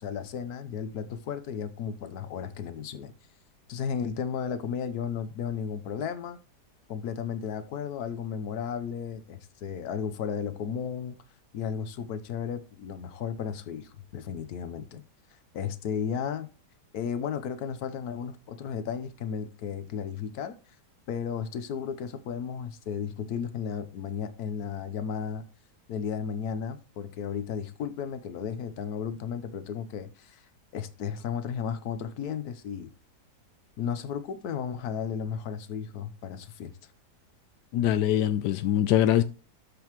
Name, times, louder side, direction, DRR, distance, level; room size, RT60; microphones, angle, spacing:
voice 1, 0.0-3.1 3.7-6.4 6.9-11.1 11.5-15.0 15.5-16.5 16.9-20.5 21.1-25.4 25.9-30.4 30.7-32.9 33.8-36.7, left 7 dB, 70° left, 1.4 m, -34 dB
voice 2, 37.7-39.2, left 11 dB, 90° left, 1.2 m, -23 dB
13.0 x 5.3 x 3.0 m
omnidirectional pair, 1.8 m